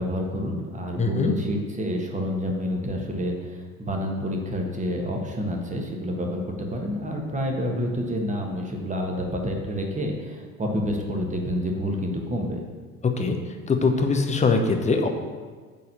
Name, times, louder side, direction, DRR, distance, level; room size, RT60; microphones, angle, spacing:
voice 1, 0.0-12.6, equal, 15° right, 1 dB, 1.5 m, -28 dB
voice 2, 1.0-1.3 13.2-13.4 13.7-15.1, left 4 dB, 15° left, 4 dB, 0.9 m, -22 dB
8.9 x 4.2 x 6.6 m, 1.5 s
figure-of-eight pair, 65°, 44 cm